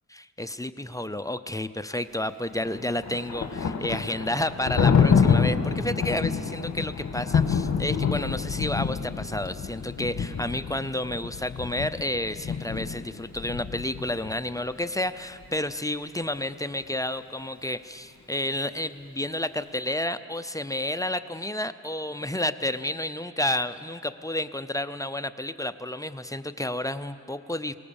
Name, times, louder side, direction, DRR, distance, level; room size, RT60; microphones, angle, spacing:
voice 1, 0.1-27.7, left 1 dB, 10° left, 10 dB, 0.6 m, -31 dB
Thunder, 2.6-14.4, left 6 dB, 60° left, 1.5 m, -27 dB
24.5 x 18.5 x 7.1 m, 2.5 s
wide cardioid pair, 110°, 32 cm